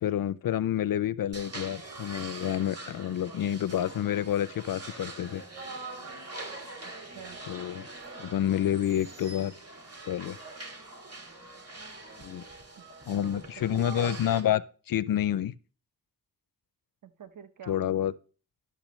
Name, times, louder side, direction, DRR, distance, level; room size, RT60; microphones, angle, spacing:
voice 1, 0.0-5.4 7.5-7.8 8.2-9.5 10.0-10.4 12.2-12.4 13.1-14.6 14.9-15.5 17.7-18.1, left 11 dB, 65° left, 0.5 m, -28 dB
sound 1, 1.3-14.4, right 2 dB, 40° right, 2.1 m, -43 dB
voice 2, 7.1-7.4 12.8-13.4 13.7-14.2 17.0-18.0, right 6 dB, 55° right, 0.9 m, -46 dB
12.0 x 5.9 x 3.1 m
cardioid pair, 65°, 37 cm